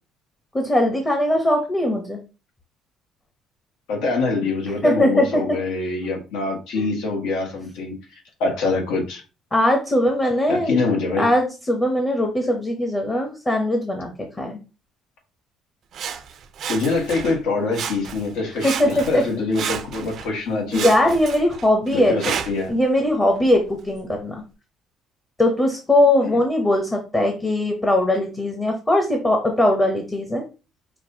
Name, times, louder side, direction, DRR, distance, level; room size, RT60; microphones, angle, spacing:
voice 1, 0.5-2.2 4.8-5.4 6.8-6.9 9.5-10.8 11.2-14.1 14.4-14.6 18.6-19.2 20.7-22.2 22.7-24.4 25.4-30.4, left 1 dB, 15° left, 2 dB, 0.7 m, -20 dB
voice 2, 3.9-9.2 10.5-11.3 16.7-20.9 21.9-22.8 26.2-26.4, left 3 dB, 85° left, 1 dB, 1.4 m, -24 dB
Sawing, 15.9-17.4 17.7-18.3 18.6-20.3 20.7-22.7 23.4-23.5, right 8 dB, 45° right, 0.4 m, -31 dB
5.9 x 2.4 x 2.7 m, 0.32 s
cardioid pair, 155°, 0 cm